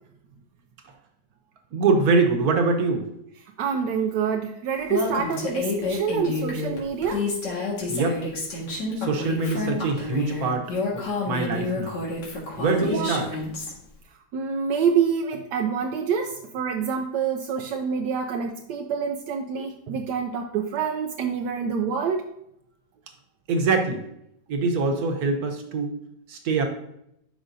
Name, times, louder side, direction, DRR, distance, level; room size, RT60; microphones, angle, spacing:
voice 1, 1.7-3.1 7.8-8.2 9.0-12.0 12.6-13.3 23.5-24.0 24.5-25.9 26.3-26.6, right 3 dB, 60° right, 4 dB, 1.5 m, -24 dB
voice 2, 3.6-7.2 12.8-13.1 14.3-22.3, right 6 dB, 80° right, 3 dB, 1.2 m, -26 dB
Female speech woman speaking, 4.9-13.7, left 3 dB, 85° left, 2.4 m, -29 dB
11.0 x 5.0 x 2.7 m, 0.77 s
omnidirectional pair, 1.8 m